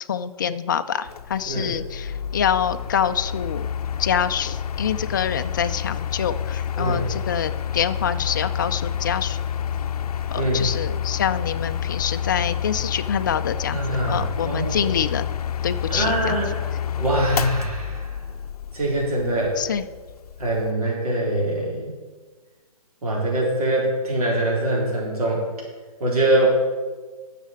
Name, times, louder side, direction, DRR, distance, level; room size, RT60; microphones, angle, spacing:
voice 1, 0.1-3.7 4.0-9.4 10.3-13.8 14.1-15.3 15.6-16.4 19.6-19.8, left 8 dB, 30° left, 10 dB, 0.4 m, -26 dB
Mechanical fan, 1.1-20.7, left 8 dB, 80° left, 0.6 m, -29 dB
voice 2, 10.3-10.7 13.7-14.9 15.9-16.6 17.0-18.2 18.7-19.5 20.4-21.9 23.0-25.5 26.0-26.5, right 1 dB, 75° right, -3 dB, 4.0 m, -23 dB
10.5 x 6.7 x 7.2 m, 1.4 s
hypercardioid pair, 170°, 19 cm